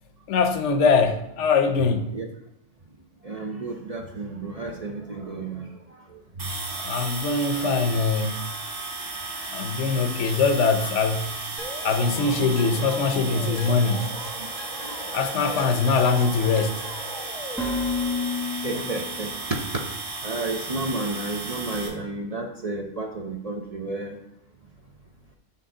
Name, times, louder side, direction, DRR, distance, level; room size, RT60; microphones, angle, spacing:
voice 1, 0.3-2.2 6.8-8.4 9.5-11.3 11.8-14.1 15.1-16.8, left 4 dB, 75° left, 1.0 m, -22 dB
voice 2, 3.2-5.7 10.8-10.9 14.8-15.0 18.6-19.3 20.2-24.2, right 2 dB, 40° right, 0.6 m, -32 dB
sound 1, 6.4-21.9, right 3 dB, 75° right, 1.6 m, -34 dB
sound 2, 11.6-19.4, left 3 dB, 5° left, 0.7 m, -34 dB
6.6 x 5.6 x 3.7 m
omnidirectional pair, 1.2 m